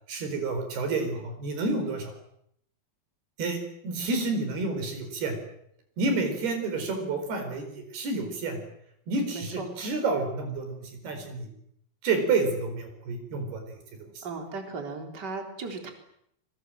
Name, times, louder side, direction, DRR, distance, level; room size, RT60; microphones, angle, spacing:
voice 1, 0.1-2.1 3.4-5.3 6.0-8.6 9.1-11.5 12.0-13.8 14.2-14.3, right 3 dB, 90° right, 6 dB, 6.6 m, -29 dB
voice 2, 9.3-9.6 14.2-15.9, right 4 dB, 25° right, 4 dB, 4.1 m, -36 dB
26.0 x 24.0 x 7.7 m, 0.72 s
omnidirectional pair, 4.4 m